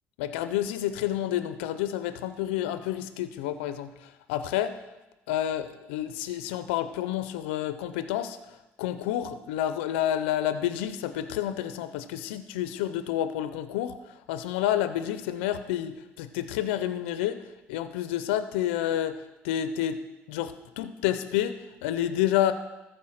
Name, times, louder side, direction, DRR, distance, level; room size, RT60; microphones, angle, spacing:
voice 1, 0.2-4.8 5.3-8.4 8.8-14.0 14.3-17.4 17.7-20.0 20.3-22.5, left 11 dB, 90° left, 11 dB, 0.5 m, -29 dB
13.5 x 4.7 x 6.4 m, 1.0 s
supercardioid pair, 70°, 6 cm